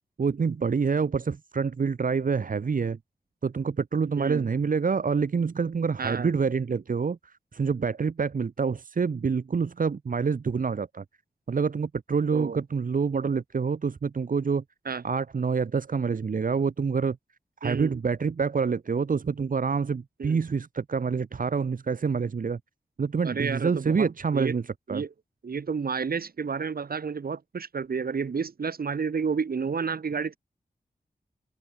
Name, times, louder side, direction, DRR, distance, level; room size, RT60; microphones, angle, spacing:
voice 1, 0.2-3.0 3.4-11.0 11.5-14.6 15.0-17.2 17.6-22.6 23.0-25.0, right 5 dB, 65° right, 1.4 m, -27 dB
voice 2, 6.0-6.3 12.3-12.6 14.8-15.0 17.6-17.9 20.2-20.4 23.2-24.5 24.9-25.1 25.4-30.4, right 5 dB, 80° right, 5.0 m, -30 dB
wide cardioid pair, 90°, 15 cm